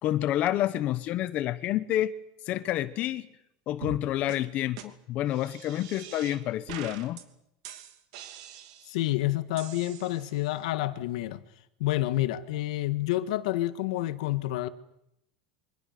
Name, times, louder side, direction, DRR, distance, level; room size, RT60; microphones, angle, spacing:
voice 1, 0.0-2.1 2.5-3.3 3.7-7.2, left 13 dB, 40° left, 1.0 m, -29 dB
sound 1, 3.8-4.0 4.3-4.4 4.8-4.9 5.3-6.4 6.7-7.2 7.6-9.0 9.6-10.5, right 9 dB, 65° right, 2.7 m, -44 dB
voice 2, 8.9-11.4 11.8-14.7, left 16 dB, 80° left, 1.7 m, -29 dB
28.5 x 24.5 x 6.8 m
supercardioid pair, 160°, 4 cm